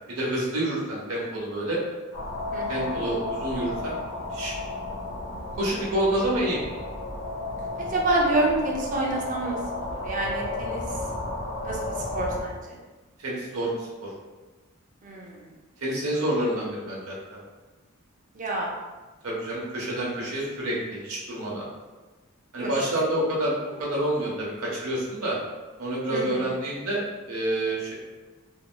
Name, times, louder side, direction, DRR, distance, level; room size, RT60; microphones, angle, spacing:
voice 1, 0.1-1.8 2.7-4.0 4.3-4.5 5.6-6.6 13.2-14.1 15.8-17.4 19.2-21.7 22.5-23.5 23.8-25.4 25.8-27.0 27.3-27.9, right 1 dB, 85° right, -5 dB, 0.9 m, -28 dB
sound 1, 2.1-12.4, left 2 dB, 60° left, 0.8 m, -33 dB
voice 2, 2.5-3.0 7.8-10.8 11.6-11.8 12.1-12.6 15.0-15.3 18.4-18.7 26.1-26.2, right 2 dB, 40° right, -2 dB, 0.5 m, -27 dB
3.0 x 2.8 x 2.2 m, 1.2 s
head